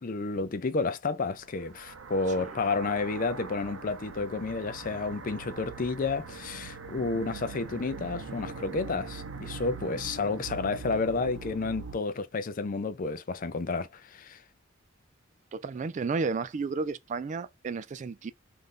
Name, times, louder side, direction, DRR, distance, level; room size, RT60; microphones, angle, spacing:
voice 1, 0.0-14.4, left 3 dB, 40° left, 0.5 m, -31 dB
sound 1, 1.4-12.0, right 4 dB, 75° right, 0.7 m, -42 dB
voice 2, 15.5-18.3, right 4 dB, 35° right, 0.3 m, -32 dB
3.2 x 2.6 x 3.6 m
head